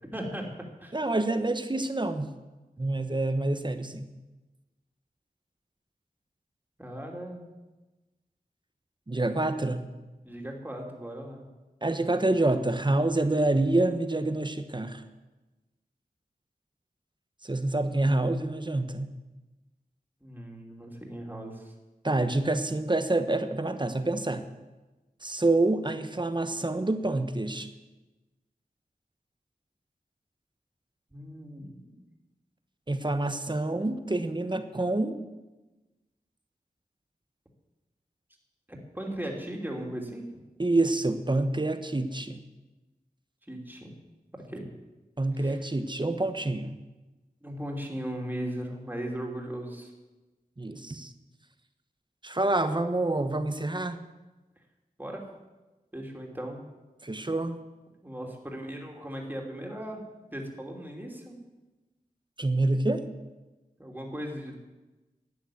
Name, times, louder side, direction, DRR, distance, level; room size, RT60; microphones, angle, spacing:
voice 1, 0.1-0.5 0.8-0.9 2.8-2.9 6.8-7.5 10.2-11.5 20.2-21.7 31.1-32.0 38.9-40.4 43.5-43.9 44.3-44.7 45.3-45.6 47.4-49.9 55.0-55.2 55.9-56.6 58.0-60.0 60.3-61.4 63.8-64.6, right 1 dB, 10° right, 0 dB, 2.9 m, -37 dB
voice 2, 0.9-2.3 2.8-4.1 9.1-9.9 11.8-15.0 17.4-19.1 22.0-24.4 25.2-27.7 32.9-35.2 40.6-42.4 45.2-46.8 50.6-51.1 52.2-54.0 57.0-57.6 62.4-63.0, right 2 dB, 30° right, 9 dB, 1.2 m, -27 dB
12.5 x 9.2 x 8.6 m, 1.1 s
wide cardioid pair, 65°, 16 cm